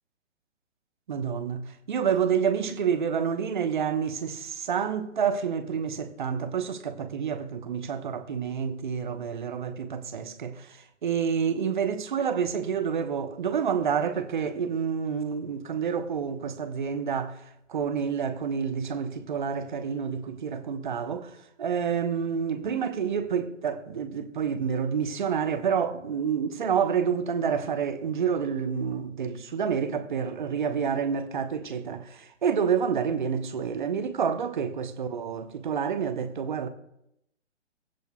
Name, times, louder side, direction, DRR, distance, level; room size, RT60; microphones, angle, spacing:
voice 1, 1.1-17.4 17.7-21.3 21.6-36.7, right 7 dB, 40° right, 1.1 m, -28 dB
23.0 x 10.0 x 2.3 m
figure-of-eight pair, 135°, 37 cm